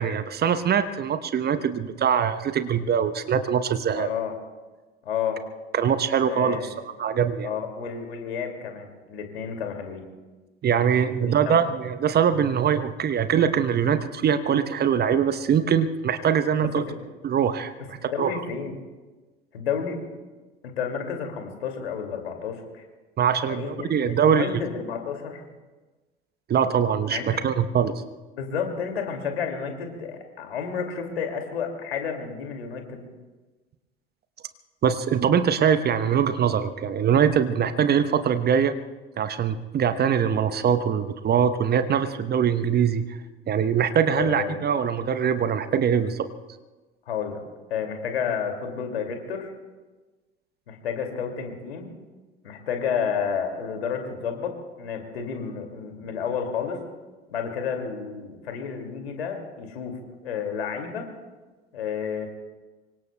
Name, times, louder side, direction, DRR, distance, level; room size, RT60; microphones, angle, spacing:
voice 1, 0.0-4.1 5.7-6.6 7.0-7.5 10.6-16.8 17.2-18.3 23.2-24.6 26.5-27.9 34.8-38.8 39.2-43.2 43.5-46.2, right 8 dB, 30° right, 11 dB, 1.0 m, -23 dB
voice 2, 3.9-4.3 5.0-5.4 6.3-6.7 7.4-10.1 11.2-11.7 16.6-17.0 18.1-18.8 19.5-20.0 20.6-22.8 23.5-23.9 24.3-25.4 27.1-27.2 28.3-33.1 44.1-44.6 47.1-47.4 47.7-49.5 50.7-51.9 52.4-56.8 57.3-61.1 61.7-62.3, left 7 dB, 75° left, 4 dB, 2.5 m, -31 dB
25.5 x 24.0 x 2.3 m, 1.2 s
figure-of-eight pair, 65°, 31 cm